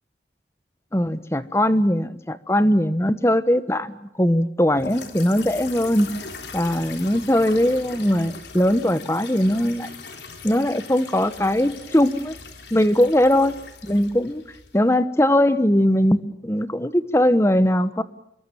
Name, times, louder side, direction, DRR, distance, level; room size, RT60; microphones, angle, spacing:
voice 1, 0.9-6.1 6.5-9.9 10.4-12.3 12.7-13.6 13.8-14.4 14.7-18.0, left 1 dB, 15° left, 13 dB, 1.2 m, -20 dB
sound 1, 4.8-14.9, left 4 dB, 80° left, 3.6 m, -40 dB
26.5 x 23.0 x 7.1 m, 0.80 s
head